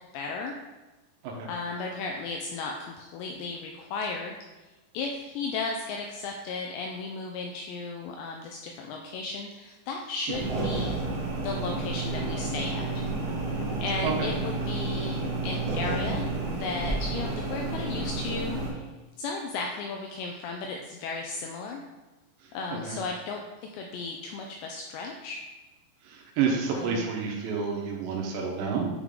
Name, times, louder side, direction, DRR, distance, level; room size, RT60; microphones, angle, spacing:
voice 1, 0.1-0.5 1.5-4.4 4.9-11.0 11.4-13.0 13.8-18.9 19.2-21.8 22.5-25.4 26.7-27.1, left 3 dB, 85° left, 1 dB, 2.5 m, -35 dB
sound 1, 10.3-18.7, right 3 dB, 40° right, 2.0 m, -31 dB
voice 2, 26.0-28.9, right 5 dB, 75° right, 0 dB, 2.8 m, -29 dB
9.1 x 3.6 x 3.7 m, 1.1 s
omnidirectional pair, 5.4 m